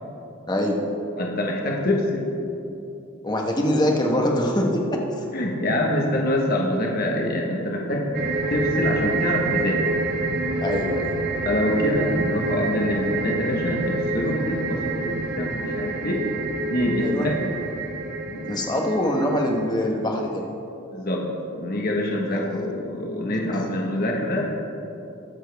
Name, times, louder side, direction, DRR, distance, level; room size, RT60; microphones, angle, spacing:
voice 1, 0.5-0.8 3.2-5.2 10.6-11.1 17.0-17.3 18.5-20.4 22.3-22.6 23.5-23.7, equal, 20° left, 1 dB, 1.2 m, -24 dB
voice 2, 1.2-2.2 5.3-8.1 8.5-9.8 11.4-16.2 16.7-17.5 18.3-18.5 20.9-21.3 21.5-24.6, left 1 dB, 45° left, -1 dB, 1.3 m, -25 dB
sound 1, 8.1-19.7, right 2 dB, 50° right, 1.0 m, -27 dB
21.5 x 7.3 x 3.5 m, 2.9 s
head